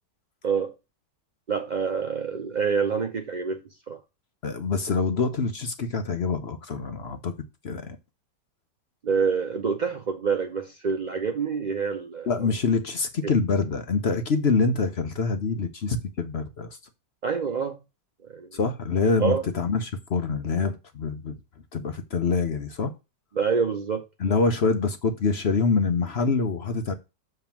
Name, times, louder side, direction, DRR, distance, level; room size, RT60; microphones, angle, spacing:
voice 1, 1.5-4.0 9.0-12.5 13.2-13.3 17.2-17.8 18.3-18.6 19.2-19.4 23.3-24.1, right 6 dB, 60° right, 0.4 m, -27 dB
voice 2, 4.4-7.3 7.6-8.0 12.3-16.8 18.5-21.4 21.7-22.9 24.2-26.9, left 4 dB, 50° left, 0.9 m, -25 dB
7.2 x 3.5 x 5.8 m
omnidirectional pair, 1.9 m